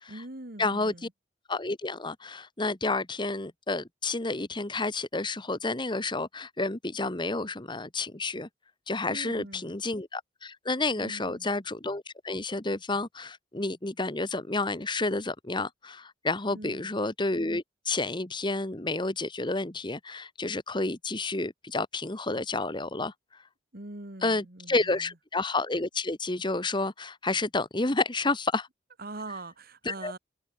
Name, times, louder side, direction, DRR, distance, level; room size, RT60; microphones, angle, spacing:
voice 1, 0.1-1.1 9.1-9.7 11.0-11.5 16.5-16.9 23.7-25.1 29.0-30.2, right 2 dB, 50° right, 2.3 m, -43 dB
voice 2, 0.6-0.9 1.5-8.5 8.9-23.1 24.2-28.7 29.8-30.1, left 3 dB, 25° left, 1.5 m, -30 dB
head